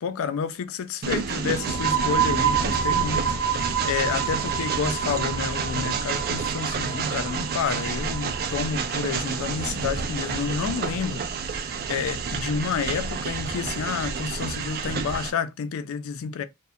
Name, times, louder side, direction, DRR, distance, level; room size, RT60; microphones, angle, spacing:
voice 1, 0.0-16.4, left 6 dB, 65° left, 0.4 m, -30 dB
Train, 1.0-15.3, right 5 dB, 45° right, 0.3 m, -29 dB
sound 1, 1.5-9.0, right 7 dB, 70° right, 0.8 m, -28 dB
2.7 x 2.1 x 2.3 m
head